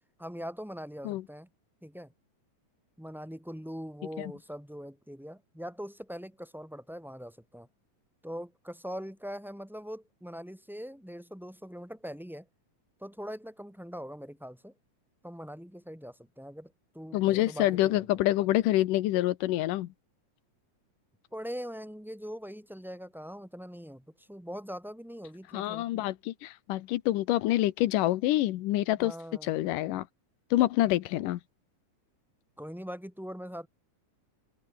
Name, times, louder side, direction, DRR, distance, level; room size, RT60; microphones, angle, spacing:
voice 1, 0.2-1.5 1.8-2.1 3.0-7.7 8.2-12.5 13.0-14.7 15.2-18.1 21.3-26.1 29.0-29.6 30.8-30.9 32.6-33.7, equal, 5° right, 0.3 m, -42 dB
voice 2, 17.1-19.9 25.5-29.1 29.4-30.1 30.5-31.4, left 15 dB, 90° left, 2.5 m, -27 dB
omnidirectional pair, 3.8 m